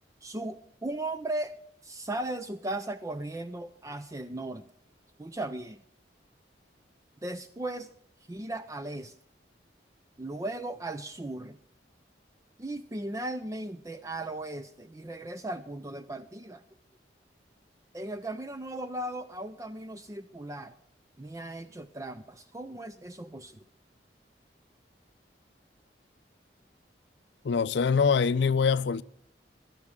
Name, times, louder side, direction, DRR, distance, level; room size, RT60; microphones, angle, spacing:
voice 1, 0.2-1.5 1.8-4.6 5.2-5.8 7.2-7.9 8.3-9.2 10.2-11.6 12.6-16.6 17.9-20.7 21.2-23.6, right 1 dB, 20° right, 0.4 m, -37 dB
voice 2, 27.4-29.0, left 5 dB, 75° left, 0.5 m, -24 dB
15.5 x 12.0 x 3.7 m
head